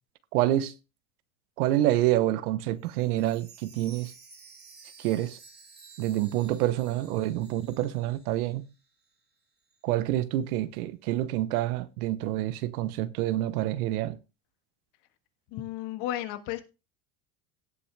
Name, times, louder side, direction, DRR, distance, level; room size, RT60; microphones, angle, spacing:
voice 1, 0.3-0.7 1.6-4.1 5.0-5.4 6.0-8.6 9.8-14.2, right 14 dB, 90° right, 1.1 m, -27 dB
Chime, 2.8-8.7 9.0-9.1 9.7-9.8, right 4 dB, 25° right, 2.6 m, -53 dB
voice 2, 15.5-16.6, left 13 dB, 65° left, 1.6 m, -33 dB
17.5 x 5.8 x 3.3 m
supercardioid pair, 120°, 43 cm